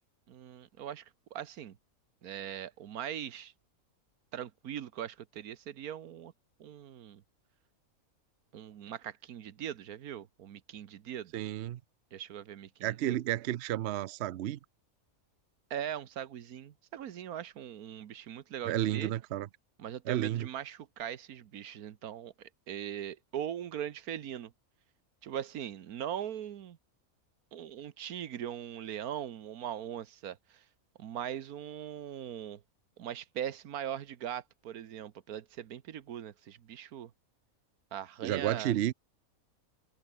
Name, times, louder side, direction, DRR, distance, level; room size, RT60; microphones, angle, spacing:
voice 1, 0.3-1.8 2.2-3.5 4.3-6.3 6.6-7.2 8.5-11.3 12.1-13.1 15.7-19.1 19.8-24.5 25.2-26.8 27.5-30.6 31.0-32.6 33.0-37.1 37.9-38.7, right 10 dB, 90° right, 1.5 m, -40 dB
voice 2, 11.3-11.8 12.8-14.6 18.7-19.5 20.1-20.5 38.2-38.9, right 13 dB, 60° right, 0.7 m, -31 dB
omnidirectional pair, 1.5 m